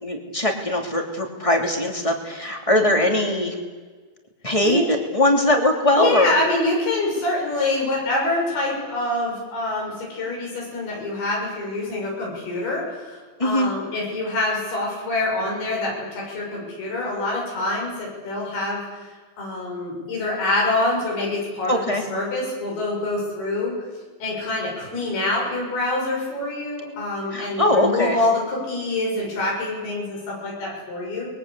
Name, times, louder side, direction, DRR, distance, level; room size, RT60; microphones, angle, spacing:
voice 1, 0.0-3.6 4.4-6.3 13.4-13.7 21.7-22.0 27.3-28.2, left 1 dB, 10° left, 2 dB, 2.4 m, -21 dB
voice 2, 5.9-18.8 19.4-21.8 22.1-23.7 24.2-31.3, left 2 dB, 90° left, -2 dB, 8.8 m, -26 dB
30.0 x 22.0 x 8.3 m, 1.4 s
omnidirectional pair, 4.3 m